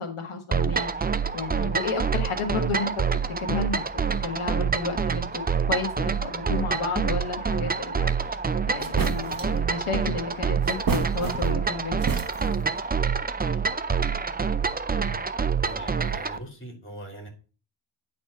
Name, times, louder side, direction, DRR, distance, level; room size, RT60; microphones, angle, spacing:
voice 1, 0.0-2.9 3.4-3.8 4.2-5.4 5.7-8.4 8.7-12.0, left 4 dB, 85° left, 3 dB, 1.4 m, -32 dB
sound 1, 0.5-16.4, right 6 dB, 20° right, 0.4 m, -27 dB
sound 2, 8.4-8.5 8.8-9.6 10.6-11.7 12.0-12.7, right 4 dB, 45° right, 1.0 m, -31 dB
voice 2, 15.6-17.3, right 1 dB, 25° left, 2 dB, 3.0 m, -41 dB
9.4 x 4.2 x 5.7 m, 0.36 s
wide cardioid pair, 115°, 49 cm